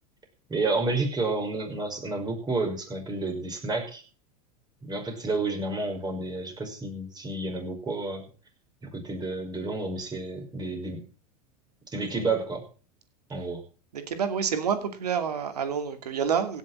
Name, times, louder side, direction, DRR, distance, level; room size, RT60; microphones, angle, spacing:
voice 1, 0.5-4.0 4.8-8.3 8.9-11.0 11.9-12.6 13.3-13.6, right 3 dB, 20° right, 3 dB, 5.5 m, -30 dB
voice 2, 13.9-16.6, right 7 dB, 85° right, 9 dB, 2.5 m, -28 dB
16.5 x 7.1 x 7.7 m, 0.38 s
hypercardioid pair, 100°, 20 cm